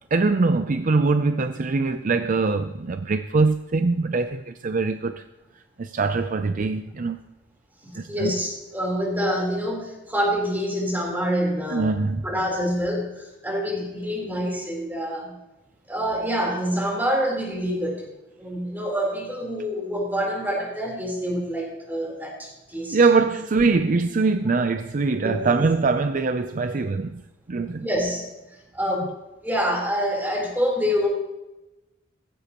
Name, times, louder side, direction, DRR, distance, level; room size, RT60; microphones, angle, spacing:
voice 1, 0.1-5.2 5.8-7.2 7.9-8.3 11.7-12.2 22.9-27.2 27.5-27.9, right 3 dB, 45° right, 0.5 m, -22 dB
voice 2, 7.8-12.0 12.2-15.3 15.9-18.0 18.4-23.0 25.2-25.4 27.8-28.3 28.7-29.1 29.4-31.1, equal, 10° right, 3.8 m, -26 dB
16.0 x 15.0 x 3.0 m
head